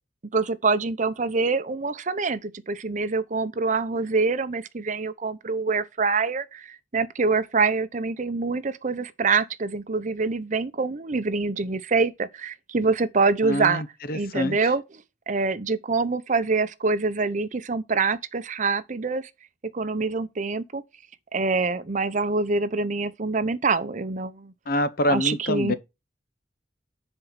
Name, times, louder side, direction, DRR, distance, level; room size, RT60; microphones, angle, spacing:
voice 1, 0.3-13.8 14.1-14.8 15.3-19.3 19.7-20.8 21.3-24.5 25.1-25.7, right 4 dB, 45° right, 0.7 m, -25 dB
voice 2, 13.4-14.6 24.7-25.7, left 1 dB, 55° left, 0.9 m, -26 dB
10.5 x 4.5 x 5.7 m
head